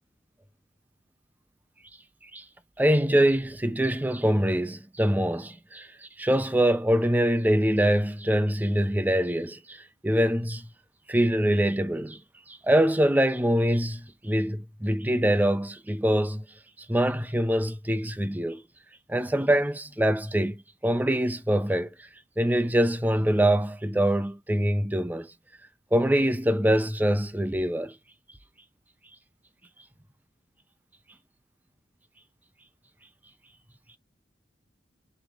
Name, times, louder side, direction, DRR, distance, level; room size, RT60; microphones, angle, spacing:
voice 1, 2.8-10.7 11.1-12.2 12.5-16.4 16.9-18.6 19.1-21.9 22.4-25.3 25.9-27.9, equal, 10° right, 0.4 m, -24 dB
3.7 x 3.0 x 3.9 m
head